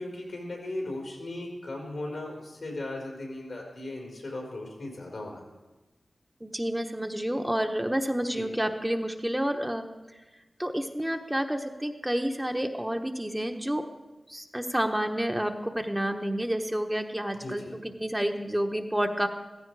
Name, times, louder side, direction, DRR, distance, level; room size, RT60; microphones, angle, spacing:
voice 1, 0.0-5.4 8.3-8.5 17.4-17.7, left 2 dB, 75° left, -1 dB, 4.4 m, -37 dB
voice 2, 6.4-9.9 10.6-13.8 14.3-19.3, equal, 10° right, 4 dB, 1.0 m, -29 dB
15.0 x 14.5 x 4.7 m, 1.2 s
cardioid pair, 55°, 0 cm